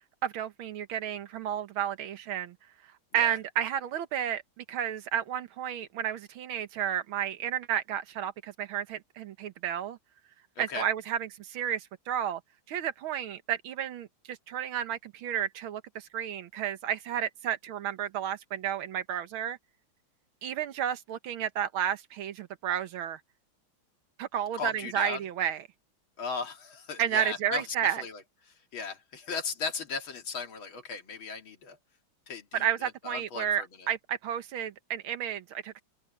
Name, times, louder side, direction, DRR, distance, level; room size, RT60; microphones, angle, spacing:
voice 1, 0.2-2.6 3.1-10.0 10.6-12.4 12.7-19.6 20.4-23.2 24.2-25.6 27.0-28.0 32.5-35.8, right 10 dB, 80° right, 1.9 m, -32 dB
voice 2, 10.6-10.9 24.5-25.2 26.2-28.2 28.5-31.8 32.3-33.9, left 5 dB, 70° left, 3.0 m, -37 dB
open air
omnidirectional pair, 2.3 m